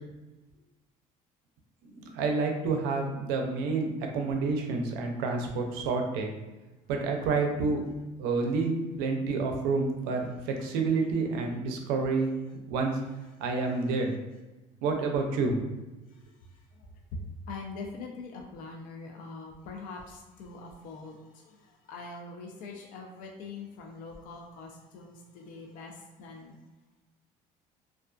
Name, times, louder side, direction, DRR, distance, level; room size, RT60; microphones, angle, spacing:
voice 1, 2.0-3.9 4.1-6.3 6.9-7.8 8.2-12.3 12.7-13.0 13.4-14.1 14.8-15.6, right 4 dB, 85° right, 3 dB, 0.4 m, -28 dB
voice 2, 16.1-17.2 17.5-26.6, left 3 dB, 60° left, 1 dB, 0.4 m, -43 dB
2.4 x 2.3 x 2.3 m, 1.1 s
cardioid pair, 105°, 15 cm